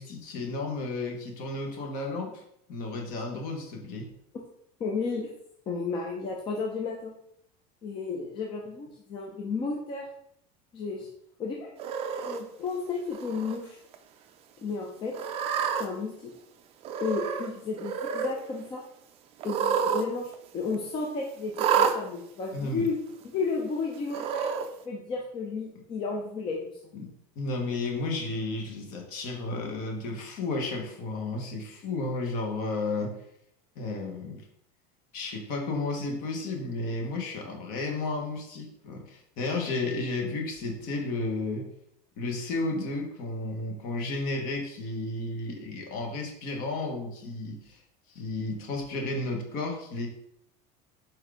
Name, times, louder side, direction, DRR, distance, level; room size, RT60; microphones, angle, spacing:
voice 1, 0.0-2.4 2.7-4.1 22.5-22.8 26.9-27.1 27.3-33.2 33.7-34.4 35.1-41.7 42.2-47.8 48.1-50.1, left 2 dB, 45° left, 2 dB, 1.4 m, -33 dB
voice 2, 4.8-5.3 5.7-7.1 7.8-10.0 10.7-11.1 11.4-11.7 12.3-13.8 14.6-15.1 15.8-16.3 17.0-18.8 19.4-23.0 23.2-24.5 24.8-26.8, left 4 dB, 25° left, 0 dB, 0.6 m, -33 dB
Cat, 11.8-12.4 13.1-13.6 13.9-14.0 15.1-15.9 16.8-17.5 17.8-18.3 19.4-20.1 20.3-20.4 21.5-22.0 22.9-23.0 24.1-24.7, right 7 dB, 30° right, 0.5 m, -28 dB
4.6 x 4.5 x 5.0 m, 0.75 s
cardioid pair, 180°, 20 cm